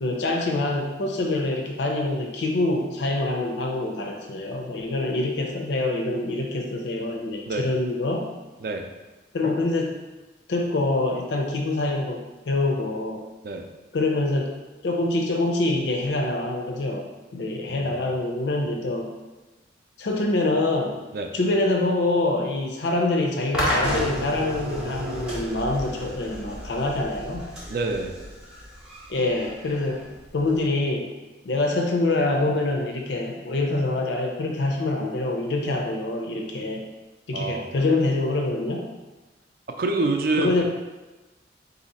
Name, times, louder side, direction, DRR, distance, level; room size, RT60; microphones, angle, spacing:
voice 1, 0.0-8.3 9.3-10.0 10.5-13.2 13.9-14.6 14.8-19.1 20.0-21.0 21.3-27.5 29.1-30.1 30.3-31.1 31.4-36.8 37.3-38.9 40.4-40.6, left 2 dB, 70° left, 1 dB, 0.5 m, -25 dB
voice 2, 17.7-18.1 21.1-21.3 27.7-28.1 37.3-37.6 39.8-40.6, right 3 dB, 50° right, 4 dB, 0.4 m, -27 dB
sound 1, 23.5-30.6, equal, 5° right, 0.7 m, -31 dB
4.0 x 2.7 x 4.1 m, 1.1 s
head